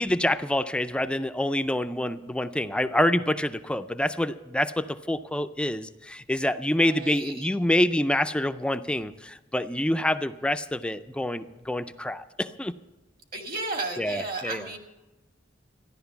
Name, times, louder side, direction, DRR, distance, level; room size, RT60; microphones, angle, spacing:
voice 1, 0.0-12.7 14.0-14.7, left 1 dB, 5° left, 10 dB, 0.4 m, -27 dB
voice 2, 6.7-7.5 13.3-14.8, right 3 dB, 50° right, 3 dB, 2.0 m, -34 dB
14.0 x 11.0 x 6.9 m, 1.1 s
head